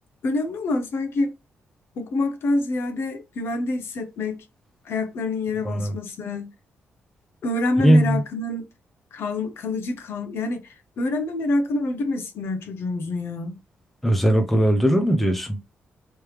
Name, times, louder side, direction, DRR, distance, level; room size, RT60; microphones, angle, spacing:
voice 1, 0.2-1.3 2.0-4.4 4.8-6.5 7.4-8.7 9.1-13.6, left 2 dB, 65° left, 0.8 m, -27 dB
voice 2, 5.6-6.0 7.8-8.2 14.0-15.6, right 1 dB, 5° left, 0.5 m, -19 dB
3.3 x 3.1 x 3.2 m
cardioid pair, 130°, 4 cm